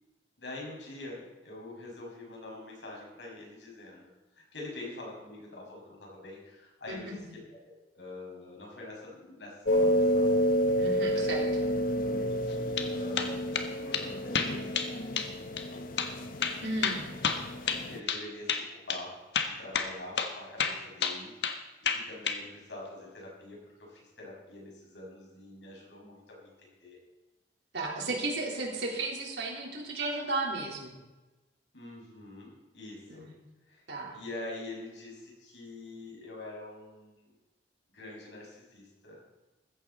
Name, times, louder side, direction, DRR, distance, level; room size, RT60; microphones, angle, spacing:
voice 1, 0.4-7.4 7.6-10.3 10.9-11.4 12.0-15.8 17.8-19.1 19.4-27.0 31.7-33.2 33.7-33.8 34.1-37.3 37.9-39.2, left 2 dB, 90° left, -3 dB, 6.1 m, -45 dB
voice 2, 6.9-7.2 10.8-11.4 16.6-17.0 27.7-31.0 33.1-33.3 33.9-34.2, right 2 dB, 80° right, -2 dB, 4.0 m, -34 dB
sound 1, 9.7-18.0, equal, 55° left, 0.9 m, -30 dB
sound 2, 12.5-12.9 13.2-13.7 13.9-14.1 14.3-14.9 15.2-15.3 15.6-15.7 16.0-16.1 16.4-18.2 18.5-18.6 18.9-19.0 19.3-19.9 20.2-20.3 20.6-21.6 21.9-22.4, left 6 dB, 70° left, 1.4 m, -30 dB
15.0 x 14.5 x 4.2 m, 1.1 s
head